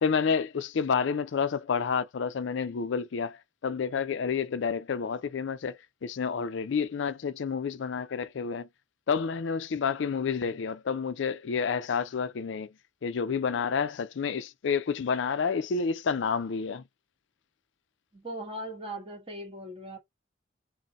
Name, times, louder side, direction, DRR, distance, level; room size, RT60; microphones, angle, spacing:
voice 1, 0.0-8.7 9.1-12.7 13.0-16.8, left 6 dB, 70° left, 0.4 m, -29 dB
voice 2, 18.1-20.0, right 1 dB, 30° right, 1.3 m, -39 dB
3.7 x 2.1 x 4.1 m
head